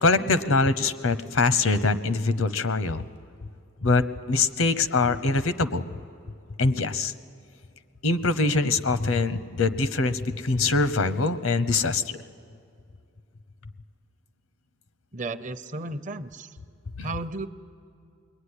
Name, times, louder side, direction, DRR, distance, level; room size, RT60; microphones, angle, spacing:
voice 1, 0.0-3.0 3.8-5.8 6.6-7.1 8.0-12.2 17.0-17.1, left 3 dB, 85° left, 12 dB, 0.9 m, -23 dB
voice 2, 15.1-16.6 17.0-17.5, right 2 dB, 40° right, 11 dB, 0.7 m, -34 dB
27.5 x 21.5 x 9.9 m, 2.4 s
head